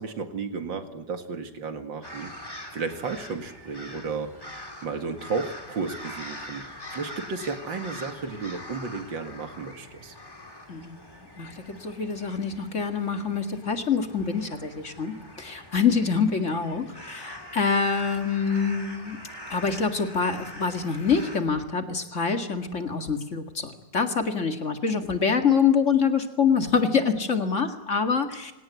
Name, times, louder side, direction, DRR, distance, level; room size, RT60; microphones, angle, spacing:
voice 1, 0.0-2.3 2.7-4.3 4.8-10.1, right 4 dB, 85° right, 7 dB, 2.8 m, -33 dB
sound 1, 2.0-21.4, left 1 dB, 10° left, 2.6 m, -43 dB
voice 2, 10.7-19.2 19.5-28.5, left 6 dB, 40° left, 6 dB, 2.3 m, -25 dB
26.5 x 18.0 x 9.6 m, 1.1 s
omnidirectional pair, 2.0 m